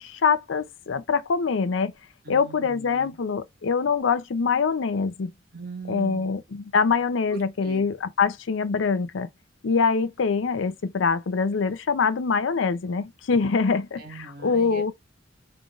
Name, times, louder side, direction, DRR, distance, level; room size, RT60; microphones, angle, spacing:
voice 1, 0.0-1.9 2.3-5.3 5.9-9.3 9.6-14.9, left 5 dB, 80° left, 0.5 m, -24 dB
voice 2, 2.2-3.2 5.5-6.3 7.3-7.9 14.0-14.9, right 4 dB, 55° right, 1.3 m, -40 dB
3.7 x 3.4 x 2.4 m
head